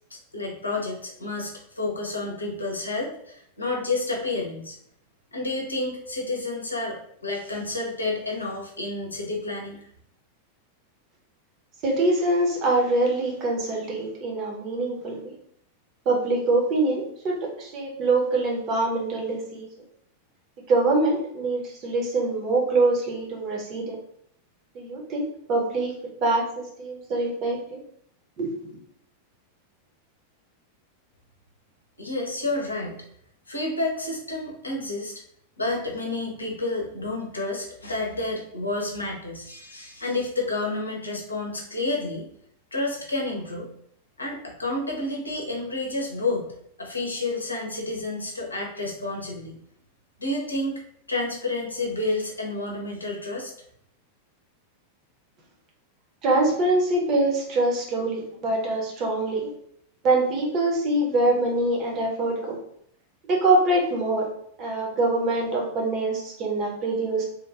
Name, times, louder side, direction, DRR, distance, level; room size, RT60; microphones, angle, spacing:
voice 1, 0.1-4.8 5.3-9.9 32.0-33.0 33.5-35.1 35.6-42.3 42.7-43.7 44.2-46.5 46.8-49.6 50.2-50.8 51.1-53.5, left 2 dB, 80° left, -1 dB, 0.6 m, -30 dB
voice 2, 11.8-15.2 16.1-19.7 20.7-24.0 24.7-25.9 26.2-27.8 28.4-28.5 56.2-59.5 60.0-62.6 63.3-64.3 64.6-67.3, right 2 dB, 35° right, -1 dB, 0.8 m, -24 dB
2.9 x 2.3 x 2.5 m, 0.68 s
figure-of-eight pair, 90°, 0 cm